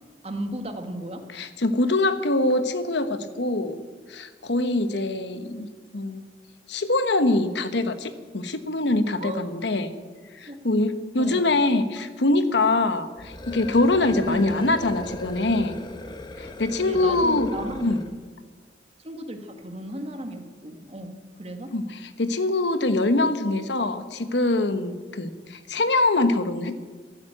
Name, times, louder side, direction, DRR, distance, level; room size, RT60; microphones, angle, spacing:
voice 1, 0.2-1.3 9.2-9.5 10.5-10.6 11.2-11.4 14.3-14.6 16.8-18.1 19.0-21.7, right 1 dB, 35° right, 6 dB, 1.6 m, -34 dB
voice 2, 1.3-3.8 4.1-6.2 6.7-9.9 10.3-15.8 16.4-17.5 17.8-18.0 21.7-26.8, left 2 dB, 75° left, 10 dB, 1.2 m, -24 dB
sound 1, 13.2-18.2, left 1 dB, 25° left, 1.1 m, -38 dB
14.0 x 12.5 x 7.7 m, 1.5 s
head